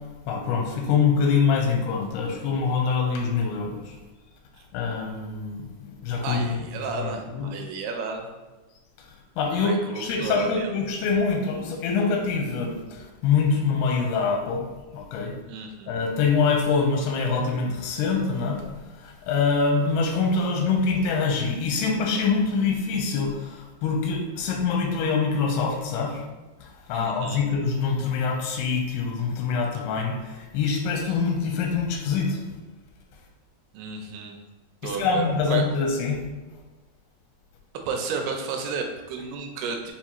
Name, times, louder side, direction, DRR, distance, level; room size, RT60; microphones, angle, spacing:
voice 1, 0.3-3.9 4.7-6.6 6.9-7.5 9.4-14.6 14.9-15.3 15.9-18.7 18.9-26.2 26.6-32.4 34.8-36.2, left 5 dB, 85° left, 1 dB, 2.7 m, -25 dB
voice 2, 6.2-8.3 9.5-10.7 15.5-16.0 26.9-27.4 33.7-34.4 34.8-35.6 37.9-39.9, right 5 dB, 85° right, 3 dB, 2.5 m, -32 dB
6.8 x 2.4 x 2.9 m, 1.1 s
omnidirectional pair, 4.5 m